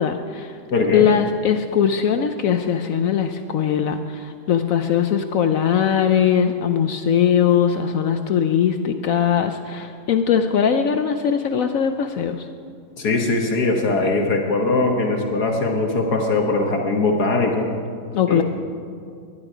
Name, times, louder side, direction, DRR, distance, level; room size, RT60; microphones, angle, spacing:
voice 1, 0.0-0.6 0.9-12.5 18.1-18.4, left 8 dB, 90° left, 7 dB, 0.7 m, -20 dB
voice 2, 0.7-1.1 13.0-17.7 18.3-18.4, left 3 dB, 55° left, 2 dB, 1.7 m, -21 dB
19.5 x 11.5 x 5.0 m, 2.4 s
omnidirectional pair, 2.1 m